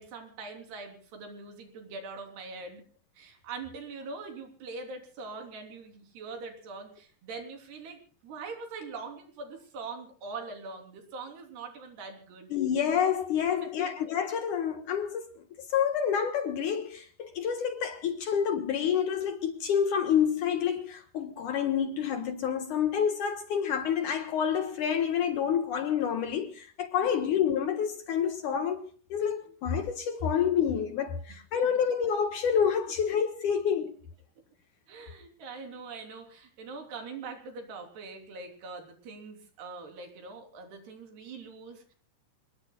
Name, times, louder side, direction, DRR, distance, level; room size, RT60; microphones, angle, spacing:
voice 1, 0.0-2.8 3.2-12.5 13.5-14.0 34.9-41.9, right 4 dB, 80° right, 5.4 m, -43 dB
voice 2, 12.5-15.4 15.7-28.8 29.1-33.9, left 8 dB, 60° left, 2.4 m, -28 dB
27.5 x 20.5 x 2.3 m
omnidirectional pair, 4.7 m